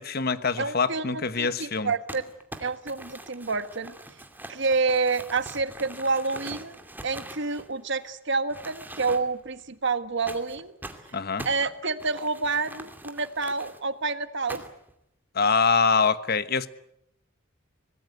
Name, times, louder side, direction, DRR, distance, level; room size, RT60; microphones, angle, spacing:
voice 1, 0.0-1.9 11.1-11.5 15.3-16.7, left 5 dB, 50° left, 1.2 m, -24 dB
voice 2, 0.6-2.3 2.6-3.9 4.5-6.8 7.0-10.7 11.4-14.6, right 4 dB, 60° right, 1.6 m, -28 dB
Crumpling crinkling, 2.1-8.1 8.5-9.5 10.3-13.8 14.5-14.9, right 1 dB, 10° right, 2.5 m, -43 dB
25.5 x 19.5 x 9.4 m
head